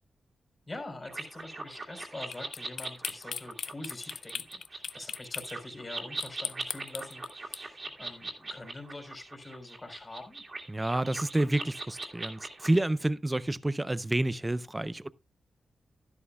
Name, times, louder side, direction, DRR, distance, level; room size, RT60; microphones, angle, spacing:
voice 1, 0.7-10.4, left 2 dB, 25° left, 3.8 m, -44 dB
sound 1, 1.0-12.8, right 2 dB, 30° right, 2.1 m, -41 dB
sound 2, 2.3-5.5 6.2-7.6, left 7 dB, 80° left, 0.5 m, -37 dB
voice 2, 10.7-15.1, right 1 dB, 15° right, 0.5 m, -29 dB
12.5 x 11.0 x 2.3 m
wide cardioid pair, 125°, 0 cm